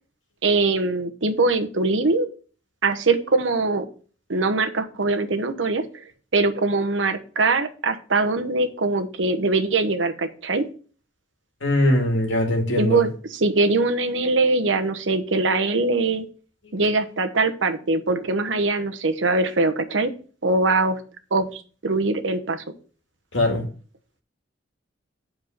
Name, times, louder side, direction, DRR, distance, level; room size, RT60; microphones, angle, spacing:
voice 1, 0.4-2.3 2.8-3.9 4.3-6.0 6.3-10.6 12.8-16.3 16.7-20.1 20.4-21.0 21.3-22.6, right 3 dB, 85° right, 7 dB, 1.0 m, -22 dB
voice 2, 11.6-13.0 16.6-16.7 23.3-23.6, left 1 dB, 80° left, 2 dB, 2.2 m, -21 dB
7.9 x 4.6 x 5.8 m, 0.41 s
head